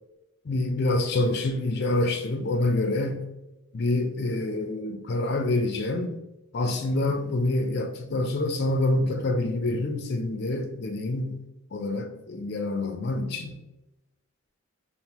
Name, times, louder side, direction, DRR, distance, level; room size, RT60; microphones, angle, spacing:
voice 1, 0.5-3.3 3.7-6.1 6.5-11.4 11.7-13.6, left 2 dB, 50° left, 5 dB, 0.4 m, -26 dB
5.4 x 2.1 x 2.9 m, 0.96 s
head